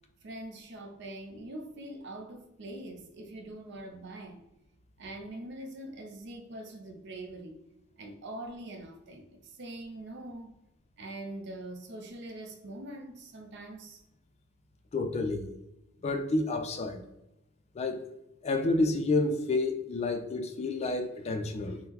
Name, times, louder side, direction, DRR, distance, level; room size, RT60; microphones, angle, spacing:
voice 1, 0.2-4.5 5.0-7.6 8.0-10.5 11.0-14.0, right 1 dB, 60° right, 0.5 m, -43 dB
voice 2, 14.9-15.5 16.0-17.0 17.7-18.1 18.4-21.8, left 2 dB, 30° left, 0.3 m, -29 dB
3.7 x 2.0 x 2.8 m
head